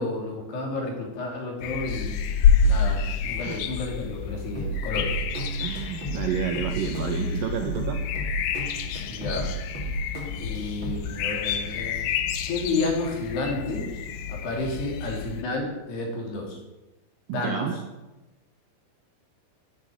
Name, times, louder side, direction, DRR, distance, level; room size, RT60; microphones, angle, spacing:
voice 1, 0.0-2.2 2.6-5.2 9.1-9.6 10.4-12.0 12.5-13.9 14.3-16.6 17.3-17.8, left 2 dB, 60° left, 1 dB, 4.8 m, -31 dB
sound 1, 1.6-15.4, left 6 dB, 85° left, 1.9 m, -28 dB
sound 2, 4.6-11.0, right 3 dB, 35° right, 2.4 m, -35 dB
voice 2, 5.6-8.0 17.3-17.8, right 8 dB, 70° right, 3 dB, 2.2 m, -30 dB
11.0 x 10.5 x 9.6 m, 1.0 s
omnidirectional pair, 5.4 m